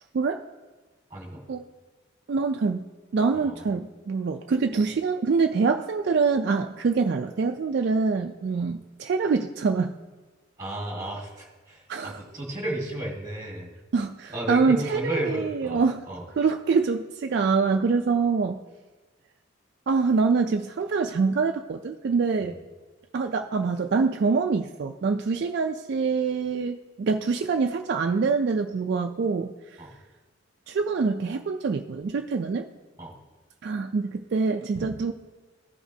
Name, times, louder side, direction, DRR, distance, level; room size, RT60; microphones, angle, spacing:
voice 1, 1.1-1.4 3.3-3.6 8.6-8.7 10.6-13.7 14.3-16.3 22.4-22.6 29.8-29.9 33.0-33.2, right 1 dB, 15° right, -1 dB, 1.8 m, -33 dB
voice 2, 2.3-2.8 3.1-9.9 11.9-12.2 13.9-16.0 16.4-18.6 19.9-22.6 23.1-29.5 30.7-32.7 33.6-35.1, right 4 dB, 55° right, 5 dB, 0.3 m, -25 dB
14.0 x 5.0 x 2.7 m, 1.3 s
head